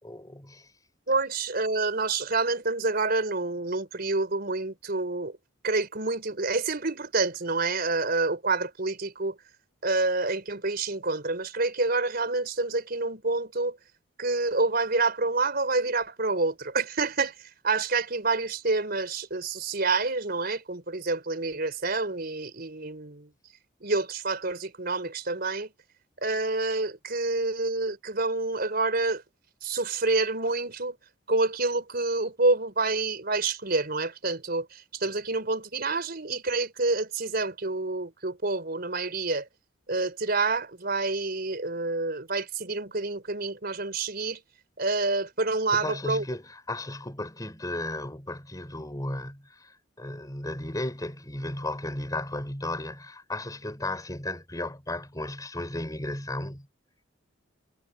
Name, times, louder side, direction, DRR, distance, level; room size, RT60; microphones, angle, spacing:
voice 1, 0.0-0.7 45.7-56.7, left 1 dB, 15° left, 4.1 m, -35 dB
voice 2, 1.1-5.4 5.6-9.4 9.8-13.8 14.2-23.3 23.8-25.7 26.2-29.2 29.6-31.0 31.3-39.5 39.9-44.4 44.8-46.2, right 3 dB, 45° right, 4.5 m, -28 dB
head